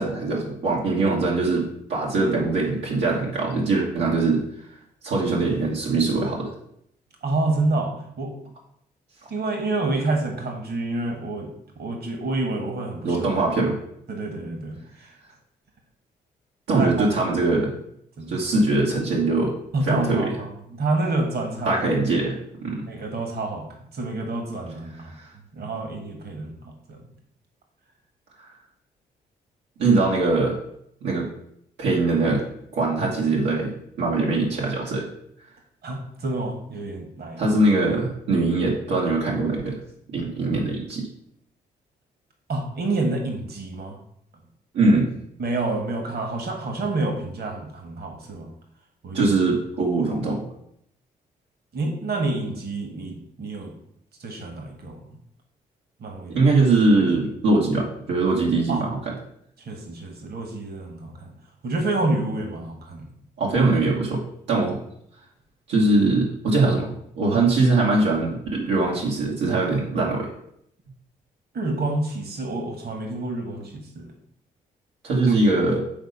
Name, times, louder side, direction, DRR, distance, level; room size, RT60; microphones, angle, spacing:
voice 1, 0.0-4.4 5.0-6.5 13.0-13.8 16.7-17.7 18.3-19.5 19.9-20.3 21.6-22.9 29.8-30.5 31.0-31.3 31.8-32.4 32.7-33.7 34.0-35.1 37.4-39.8 40.1-41.1 44.7-45.1 49.1-50.4 56.3-59.1 63.4-64.2 64.5-64.8 65.7-66.9 67.2-70.3 75.0-75.8, right 3 dB, 85° right, -4 dB, 1.5 m, -22 dB
voice 2, 7.2-8.3 9.3-11.5 11.8-13.3 14.1-15.1 16.8-17.1 18.2-18.4 19.7-21.7 22.9-23.7 23.9-25.1 25.5-27.0 35.8-37.5 42.5-44.0 45.4-48.5 49.0-49.4 51.7-53.7 54.2-55.2 56.0-56.4 58.7-58.9 59.7-61.3 61.6-63.1 64.6-64.7 71.5-74.1 75.2-75.3, right 2 dB, 60° right, 3 dB, 1.7 m, -28 dB
5.9 x 4.1 x 5.5 m, 0.71 s
supercardioid pair, 55°, 18 cm